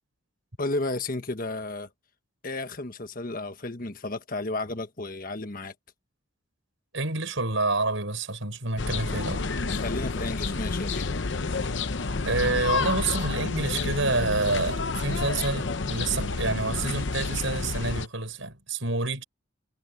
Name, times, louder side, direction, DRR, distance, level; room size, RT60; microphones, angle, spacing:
voice 1, 0.6-1.9 2.4-5.7 9.7-11.1, left 2 dB, 40° left, 1.4 m, -33 dB
voice 2, 6.9-9.5 12.2-19.2, right 3 dB, 65° right, 5.2 m, -28 dB
sound 1, 8.8-18.1, left 3 dB, 60° left, 0.8 m, -29 dB
head